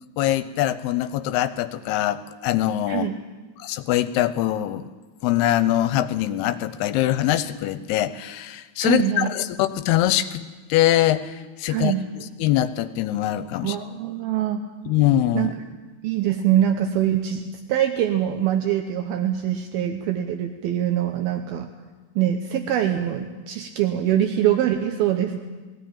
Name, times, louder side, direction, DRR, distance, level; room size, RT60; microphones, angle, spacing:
voice 1, 0.2-3.1 3.6-4.9 5.2-10.4 10.7-13.8 14.9-15.5, left 13 dB, 85° left, 13 dB, 2.8 m, -23 dB
voice 2, 2.9-3.2 8.8-9.3 11.7-12.1 13.6-14.6 15.3-15.5 16.0-17.4 17.7-21.7 22.2-25.4, right 11 dB, 75° right, 5 dB, 2.7 m, -23 dB
20.0 x 16.5 x 8.8 m, 1.3 s
omnidirectional pair, 4.6 m